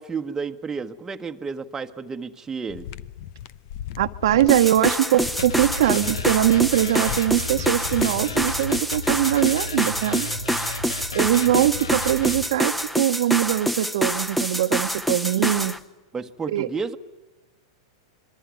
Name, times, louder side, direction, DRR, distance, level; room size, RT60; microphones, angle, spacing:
voice 1, 0.0-2.8 16.1-17.0, right 5 dB, 15° right, 5 dB, 1.3 m, -31 dB
sound 1, 2.7-8.8, left 11 dB, 55° left, 0.8 m, -37 dB
voice 2, 4.0-10.3 11.1-15.7 16.5-16.7, right 12 dB, 70° right, 7 dB, 1.2 m, -22 dB
sound 2, 4.5-15.8, equal, ahead, 1.0 m, -26 dB
sound 3, 5.4-12.4, left 2 dB, 90° left, 2.0 m, -34 dB
26.5 x 22.5 x 9.4 m, 1.1 s
hypercardioid pair, 110°, 3 cm